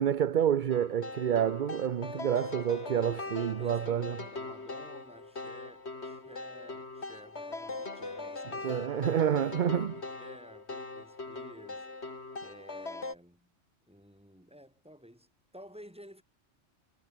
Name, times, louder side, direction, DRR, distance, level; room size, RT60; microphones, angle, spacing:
voice 1, 0.0-4.2 8.6-9.9, right 9 dB, 50° right, 0.7 m, -28 dB
sound 1, 0.7-13.2, left 3 dB, 55° left, 3.4 m, -41 dB
voice 2, 3.2-11.9 12.4-13.5 13.9-16.2, equal, 5° right, 6.2 m, -53 dB
omnidirectional pair, 1.3 m